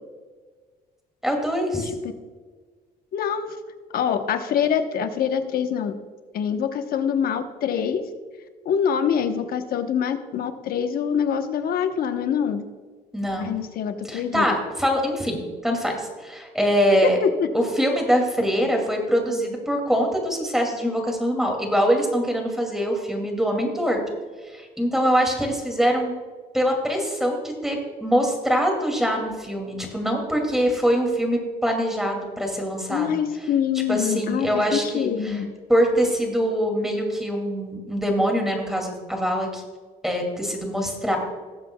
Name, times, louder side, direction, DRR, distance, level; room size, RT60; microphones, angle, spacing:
voice 1, 1.2-1.9 13.1-13.6 14.1-17.2 17.5-24.0 24.4-26.1 26.5-33.1 33.9-35.4 35.7-39.6 40.0-41.2, equal, ahead, 2 dB, 2.3 m, -23 dB
voice 2, 1.8-2.1 3.1-3.6 3.9-5.9 6.3-8.0 8.6-12.7 13.4-14.5 17.2-17.5 32.9-35.5, left 8 dB, 60° left, 7 dB, 1.0 m, -25 dB
18.5 x 7.6 x 2.3 m, 1.5 s
cardioid pair, 110°, 17 cm